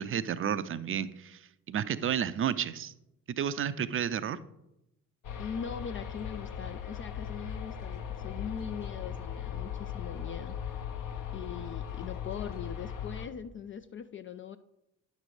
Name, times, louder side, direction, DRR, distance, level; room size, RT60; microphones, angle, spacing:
voice 1, 0.0-1.4 1.7-2.9 3.3-4.4, right 9 dB, 30° right, 14 dB, 0.5 m, -31 dB
sound 1, 5.2-13.3, left 8 dB, 50° left, 1.0 m, -38 dB
voice 2, 5.4-10.8 11.3-14.6, left 7 dB, 30° left, 10 dB, 0.4 m, -41 dB
9.6 x 6.5 x 3.2 m, 0.87 s
hypercardioid pair, 45°, 40 cm